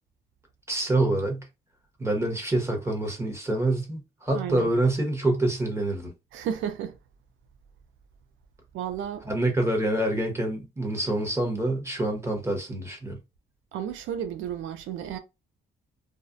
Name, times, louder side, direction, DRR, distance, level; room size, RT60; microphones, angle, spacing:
voice 1, 0.7-1.4 2.0-6.1 9.2-13.2, right 1 dB, 15° right, 1.0 m, -26 dB
voice 2, 4.3-4.7 6.3-7.0 8.7-9.2 13.7-15.2, right 9 dB, 80° right, 0.4 m, -32 dB
2.3 x 2.1 x 2.5 m
cardioid pair, 90°, 20 cm